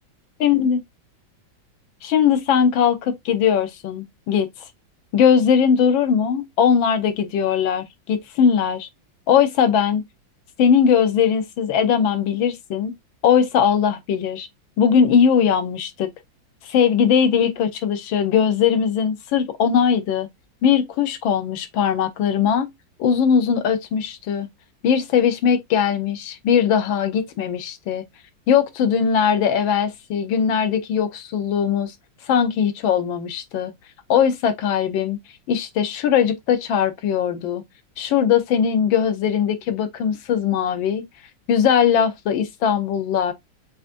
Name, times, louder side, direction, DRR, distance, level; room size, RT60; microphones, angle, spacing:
voice 1, 0.4-0.8 2.0-4.5 5.1-8.9 9.3-10.0 10.6-12.9 13.2-14.5 14.8-16.1 16.6-20.3 20.6-22.7 23.0-24.5 24.8-28.0 28.5-31.9 32.3-33.7 34.1-35.2 35.5-37.6 38.0-41.0 41.5-43.3, left 7 dB, 80° left, 1.5 m, -20 dB
6.8 x 2.5 x 2.5 m
omnidirectional pair, 2.1 m